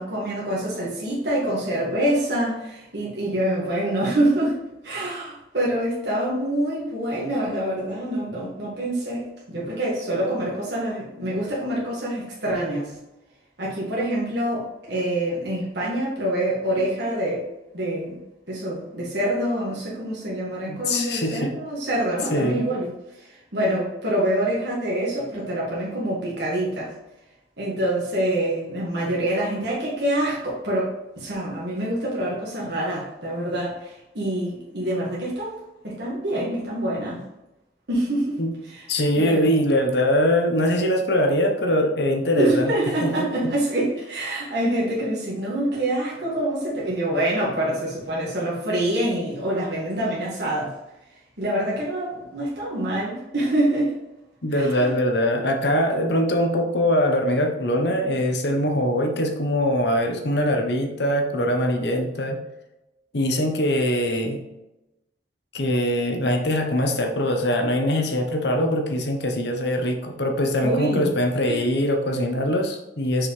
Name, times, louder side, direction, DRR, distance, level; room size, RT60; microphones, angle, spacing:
voice 1, 0.0-4.6 4.8-12.9 13.6-17.5 17.7-18.2 18.5-22.9 23.2-26.9 27.6-30.9 31.2-35.6 35.8-37.2 37.9-38.4 38.7-38.8 39.1-39.4 42.4-50.8 51.4-53.9 54.5-54.9 70.6-71.1 71.5-71.6, right 1 dB, 70° right, -6 dB, 1.8 m, -26 dB
voice 2, 20.7-21.5 22.3-22.6 38.4-38.5 38.9-42.7 43.0-43.1 54.4-62.4 63.1-64.4 65.5-73.3, left 1 dB, 70° left, 3 dB, 1.1 m, -22 dB
6.1 x 4.9 x 3.3 m, 0.96 s
head